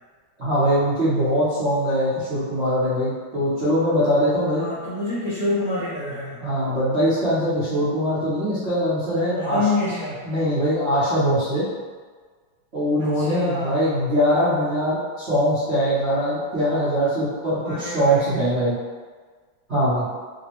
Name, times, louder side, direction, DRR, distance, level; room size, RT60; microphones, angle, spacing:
voice 1, 0.4-4.6 6.4-9.6 10.2-11.6 12.7-18.7 19.7-20.0, equal, 55° right, -14 dB, 0.7 m, -22 dB
voice 2, 4.6-6.4 9.3-10.2 13.0-14.1 17.6-18.4, left 2 dB, 65° left, -11 dB, 0.8 m, -27 dB
3.4 x 2.0 x 2.9 m, 1.5 s
omnidirectional pair, 2.3 m